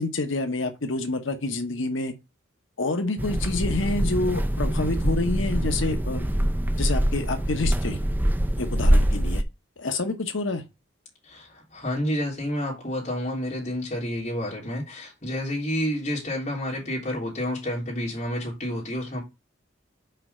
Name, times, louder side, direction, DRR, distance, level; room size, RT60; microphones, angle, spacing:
voice 1, 0.0-2.1 2.8-6.3 6.8-8.0 8.6-9.4 9.8-10.6, left 2 dB, 75° left, 1.0 m, -28 dB
sound 1, 3.2-9.4, right 1 dB, 10° right, 0.4 m, -24 dB
voice 2, 11.3-19.2, equal, 35° left, 3.5 m, -29 dB
5.7 x 4.7 x 5.5 m
head